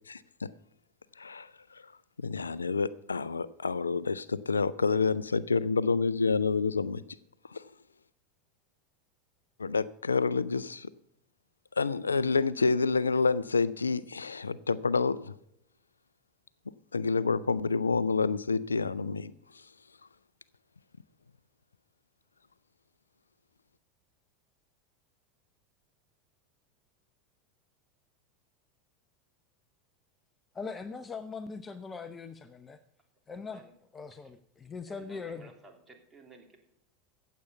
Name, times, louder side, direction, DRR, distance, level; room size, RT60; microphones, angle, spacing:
voice 1, 0.1-0.5 1.2-1.9 2.2-7.0 7.5-7.6 9.6-10.9 11.8-15.3 16.9-19.3, left 4 dB, 85° left, 0.4 m, -28 dB
voice 2, 30.5-32.8 33.3-33.6 33.9-35.5, left 4 dB, 20° left, 0.7 m, -41 dB
voice 3, 33.3-33.7 34.1-34.3 34.9-36.6, right 2 dB, 15° right, 3.1 m, -55 dB
15.0 x 8.2 x 5.6 m
figure-of-eight pair, 85°, 0 cm